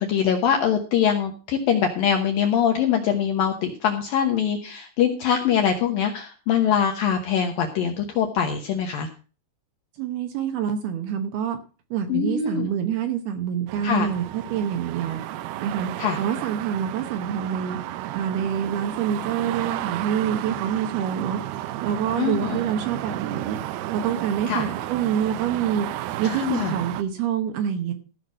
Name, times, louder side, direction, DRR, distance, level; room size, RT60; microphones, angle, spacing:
voice 1, 0.0-9.1 12.1-12.7 13.8-14.1 16.0-16.2 22.2-22.6 24.5-24.7 26.2-26.7, left 8 dB, 75° left, 3 dB, 2.2 m, -23 dB
voice 2, 10.0-11.6 11.9-15.2 15.6-15.9 16.2-17.8 18.1-21.4 21.8-23.6 23.9-25.9 26.2-27.9, right 8 dB, 70° right, 7 dB, 2.6 m, -26 dB
sound 1, 13.7-27.0, right 14 dB, 90° right, 2.2 m, -33 dB
15.0 x 5.9 x 6.3 m, 0.36 s
omnidirectional pair, 5.4 m